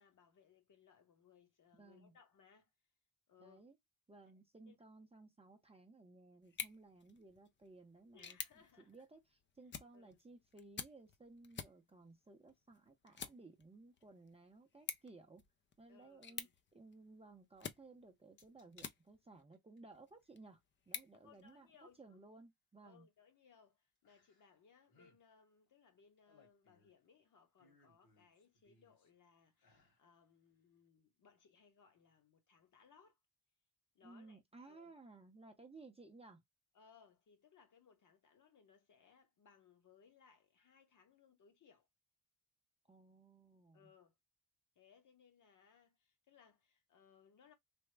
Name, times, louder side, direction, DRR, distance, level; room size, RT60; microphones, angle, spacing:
voice 1, 0.0-2.7 3.3-3.6 4.3-4.8 8.1-9.0 9.9-10.2 15.9-16.5 21.2-22.2 22.8-33.2 33.9-35.0 36.7-41.9 43.7-44.1 44.8-47.5, left 6 dB, 55° left, 1.0 m, -67 dB
voice 2, 1.8-2.1 3.4-3.8 4.1-8.4 8.9-15.4 15.8-20.6 20.9-23.1 34.0-36.4 42.9-43.9, right 3 dB, 15° right, 0.5 m, -59 dB
sound 1, 6.4-19.4 19.9-22.0, left 6 dB, 35° left, 0.4 m, -52 dB
sound 2, 18.4-18.9 19.4-19.8 21.3-21.4 24.0-24.6 24.9-25.2 26.0-27.1 27.6-29.1 29.5-30.0 30.5-30.6, left 3 dB, 70° left, 2.0 m, -69 dB
3.4 x 2.0 x 3.2 m
wide cardioid pair, 140°, 37 cm